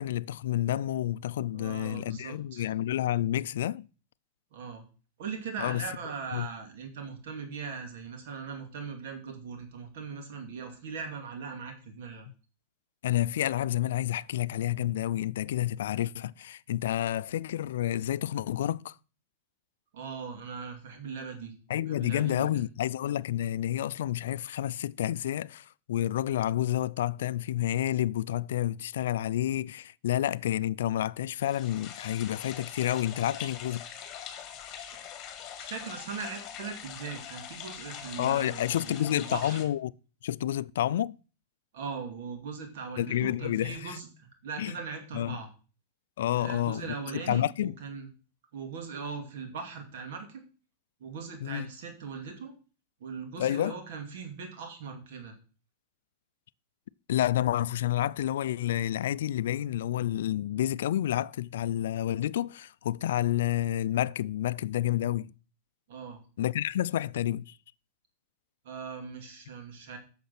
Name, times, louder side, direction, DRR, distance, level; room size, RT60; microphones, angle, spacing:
voice 1, 0.0-3.9 5.6-5.8 6.3-6.5 13.0-18.9 21.7-33.8 38.2-39.9 40.2-41.2 43.0-44.0 44.6-44.7 45.1-45.4 46.2-46.8 47.3-47.7 51.4-51.7 53.4-53.8 57.1-65.3 66.4-67.5, left 12 dB, 80° left, 0.4 m, -29 dB
voice 2, 1.5-2.7 4.5-4.8 5.2-12.3 19.9-21.5 21.9-22.7 35.6-39.6 41.7-45.5 46.4-48.1 48.5-50.4 51.0-52.5 53.0-55.3 65.9-66.2 68.6-70.0, right 5 dB, 70° right, 2.4 m, -40 dB
sound 1, 31.4-39.6, left 9 dB, 35° left, 1.8 m, -43 dB
8.4 x 6.6 x 6.0 m
supercardioid pair, 135°, 0 cm